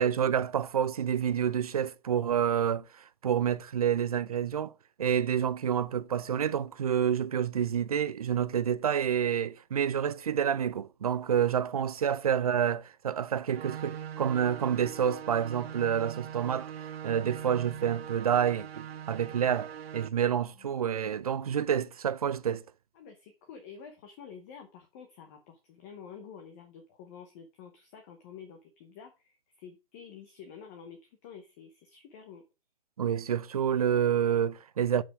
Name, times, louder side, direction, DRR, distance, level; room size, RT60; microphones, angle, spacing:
voice 1, 0.0-2.9 3.2-4.7 5.0-16.7 17.0-22.6 33.0-35.0, right 8 dB, 40° right, 0.5 m, -28 dB
sound 1, 13.5-20.1, right 9 dB, 80° right, 0.6 m, -42 dB
voice 2, 22.9-32.4, left 7 dB, 15° left, 0.8 m, -49 dB
7.5 x 5.5 x 4.8 m
hypercardioid pair, 160°, 30 cm